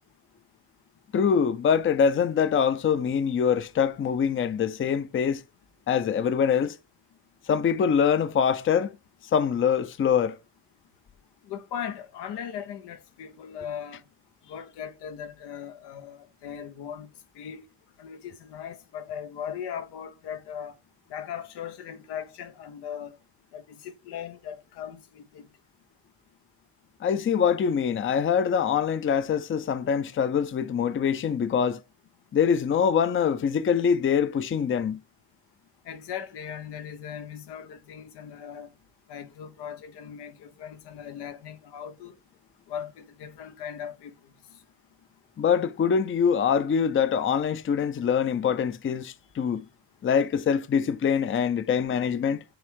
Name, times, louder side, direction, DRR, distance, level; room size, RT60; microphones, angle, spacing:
voice 1, 1.1-5.4 5.9-6.8 7.5-8.9 9.3-10.4 27.0-31.8 32.3-35.0 45.4-49.6 50.0-52.4, left 7 dB, 30° left, 0.6 m, -24 dB
voice 2, 11.5-14.0 14.5-17.1 17.3-17.7 18.0-20.8 21.1-23.2 23.5-25.4 35.8-38.7 39.1-42.1 42.7-44.1, left 8 dB, 85° left, 1.0 m, -38 dB
7.9 x 3.5 x 3.6 m
cardioid pair, 85°, 40 cm